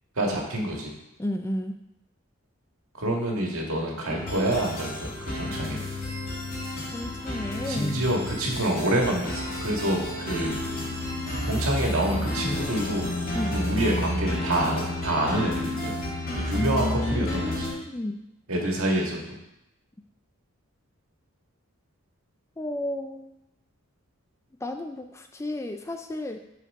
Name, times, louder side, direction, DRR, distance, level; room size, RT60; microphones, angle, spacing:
voice 1, 0.1-0.9 3.0-5.9 7.6-10.6 11.4-13.2 13.5-16.0 16.3-17.7 18.5-19.4, right 1 dB, 70° right, -1 dB, 1.8 m, -27 dB
voice 2, 1.2-1.8 6.9-8.0 13.3-13.6 16.5-18.2 22.6-23.3 24.6-26.4, left 1 dB, 10° left, 6 dB, 0.3 m, -32 dB
sound 1, 4.1-17.7, left 1 dB, 40° left, 2.6 m, -31 dB
sound 2, 11.8-16.8 17.2-17.3, left 1 dB, 65° left, 0.7 m, -37 dB
12.0 x 4.6 x 3.6 m, 0.88 s
head